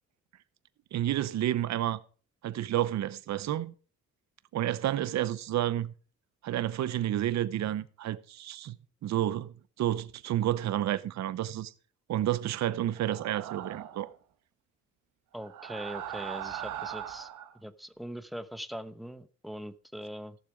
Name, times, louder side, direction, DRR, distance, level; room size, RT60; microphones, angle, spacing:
voice 1, 0.9-2.0 2.4-3.7 4.5-5.9 6.4-8.8 9.0-11.7 12.1-14.1, right 12 dB, 65° right, 0.8 m, -30 dB
sound 1, 12.9-14.1 15.4-17.5, right 10 dB, 85° right, 1.3 m, -40 dB
voice 2, 15.3-17.3 17.5-20.4, equal, ahead, 0.9 m, -41 dB
15.0 x 7.0 x 4.9 m
cardioid pair, 90°, 30 cm